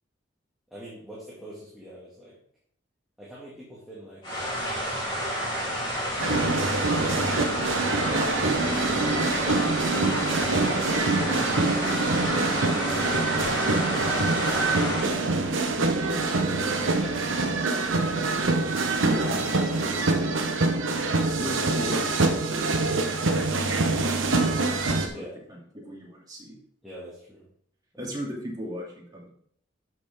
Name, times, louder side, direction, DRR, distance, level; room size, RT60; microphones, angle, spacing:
voice 1, 0.7-2.4 3.2-6.1 14.9-15.7 16.4-18.3 19.8-20.4 25.1-25.4 26.8-27.5 27.9-28.0, equal, ahead, -7 dB, 2.0 m, -44 dB
sound 1, 4.2-15.0, equal, 25° left, 3.2 m, -30 dB
sound 2, 6.2-25.1, right 3 dB, 80° right, 1.1 m, -25 dB
voice 2, 8.1-8.9 9.4-11.3 11.6-14.1 14.3-15.5 15.9-16.8 19.0-19.5 21.4-23.7 24.9-26.6 28.0-29.3, equal, 20° right, -3 dB, 2.6 m, -39 dB
11.5 x 6.3 x 3.6 m, 0.64 s
head